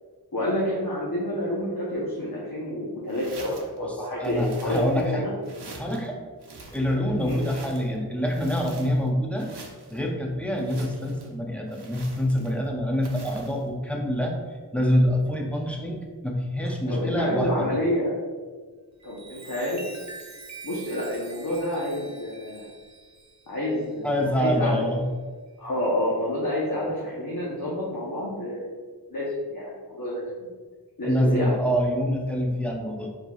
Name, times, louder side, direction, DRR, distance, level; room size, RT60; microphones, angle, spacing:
voice 1, 0.3-5.3 7.2-7.4 10.5-10.7 16.9-18.1 19.0-19.8 20.6-22.7 23.5-24.9 25.6-28.7 29.1-30.5 31.0-31.5, left 1 dB, 60° left, -6 dB, 0.9 m, -28 dB
sound 1, 3.1-3.8 4.2-5.1 5.4-6.1 6.4-8.0 8.3-9.1 9.4-10.0 10.5-11.3 11.7-12.7 13.0-13.6, right 3 dB, 85° right, 0.7 m, -46 dB
voice 2, 3.8-5.2 5.7-6.2 6.7-9.5 9.9-14.3 14.7-17.7 24.0-25.0 31.0-33.1, equal, 5° left, 0 dB, 0.6 m, -26 dB
Chime, 18.9-24.9 25.5-25.7, right 4 dB, 45° right, 0.6 m, -46 dB
4.5 x 4.0 x 2.4 m, 1.5 s
wide cardioid pair, 50°, 39 cm